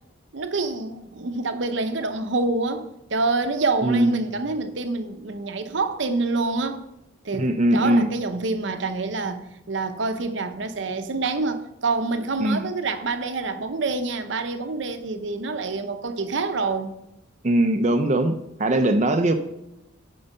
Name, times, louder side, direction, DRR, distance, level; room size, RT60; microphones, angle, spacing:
voice 1, 0.3-6.8 7.2-16.9, right 3 dB, 70° right, 0.8 m, -27 dB
voice 2, 3.8-4.3 7.4-8.1 12.4-12.7 17.4-18.3 18.6-19.3, right 1 dB, 35° right, 0.6 m, -20 dB
8.9 x 5.5 x 5.4 m
head